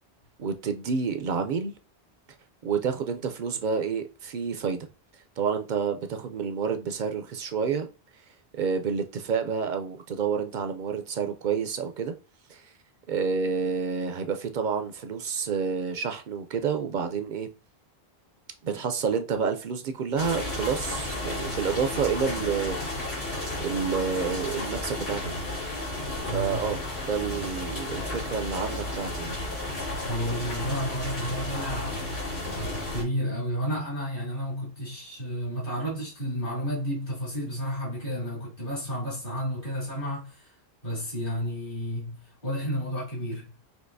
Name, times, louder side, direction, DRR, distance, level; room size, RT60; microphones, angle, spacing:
voice 1, 0.4-1.7 2.6-4.9 5.4-7.9 8.6-12.1 12.5-12.6 13.1-17.5 18.6-23.1 23.6-25.4 26.3-29.3, right 6 dB, 60° right, 0.6 m, -29 dB
sound 1, 20.1-33.0, left 1 dB, 85° left, 2.9 m, -33 dB
voice 2, 26.3-26.7 30.0-32.1 32.5-40.5 40.8-43.5, equal, 60° left, 2.7 m, -32 dB
6.2 x 2.8 x 2.6 m
omnidirectional pair, 1.0 m